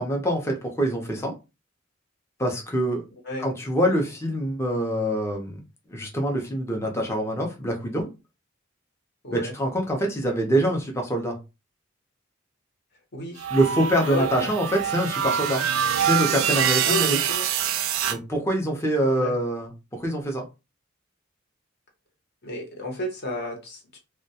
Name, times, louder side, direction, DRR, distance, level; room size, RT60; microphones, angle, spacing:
voice 1, 0.0-1.3 2.4-3.0 3.4-5.6 5.9-8.1 9.3-11.4 13.5-15.7 16.0-17.3 18.1-20.4, right 1 dB, 15° left, 0.5 m, -25 dB
voice 2, 13.1-13.5 14.1-14.5 16.9-17.5 19.2-19.3 22.4-24.0, left 1 dB, 55° left, 0.8 m, -32 dB
sound 1, 13.4-18.2, right 9 dB, 90° right, 0.3 m, -25 dB
2.2 x 2.1 x 2.7 m
head